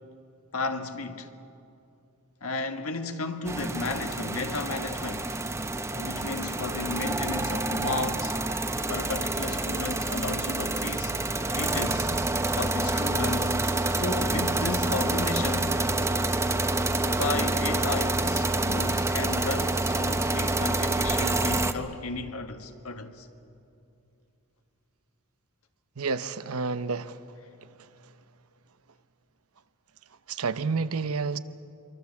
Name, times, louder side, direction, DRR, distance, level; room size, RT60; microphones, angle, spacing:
voice 1, 0.5-1.3 2.4-5.3 5.9-8.4 8.9-11.1 11.5-12.1 12.5-13.5 13.9-15.8 17.1-23.3, left 3 dB, 80° left, 1.6 m, -33 dB
sound 1, 3.4-21.7, right 2 dB, 15° right, 0.8 m, -27 dB
voice 2, 26.0-27.2 27.8-27.9 30.3-31.4, right 4 dB, 85° right, 0.8 m, -29 dB
26.5 x 23.5 x 7.1 m
head